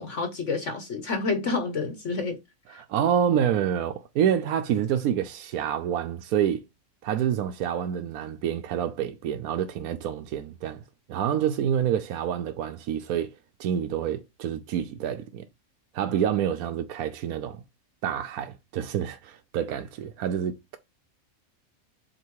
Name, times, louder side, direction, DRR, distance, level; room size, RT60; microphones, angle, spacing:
voice 1, 0.0-2.4 2.7-2.8, left 4 dB, 55° left, 1.3 m, -29 dB
voice 2, 2.7-6.6 7.0-10.8 11.1-13.3 13.6-15.5 15.9-17.6 18.0-20.8, right 9 dB, 85° right, 1.1 m, -27 dB
7.6 x 3.0 x 4.7 m
omnidirectional pair, 1.5 m